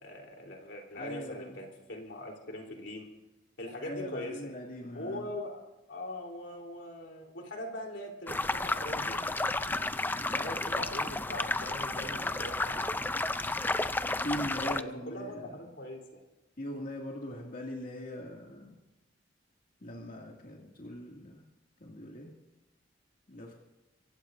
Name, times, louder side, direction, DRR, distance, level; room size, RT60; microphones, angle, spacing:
voice 1, 0.0-3.1 3.6-4.6 4.9-9.3 10.2-12.9 14.6-16.2, left 1 dB, 80° left, 1 dB, 3.6 m, -42 dB
voice 2, 0.9-1.6 3.8-5.2 14.2-15.5 16.6-18.8 19.8-21.4 21.8-22.3 23.3-23.5, left 1 dB, 50° left, -2 dB, 2.3 m, -40 dB
sound 1, 8.3-14.8, left 2 dB, 10° left, 0.5 m, -32 dB
26.0 x 15.5 x 2.7 m, 1.0 s
head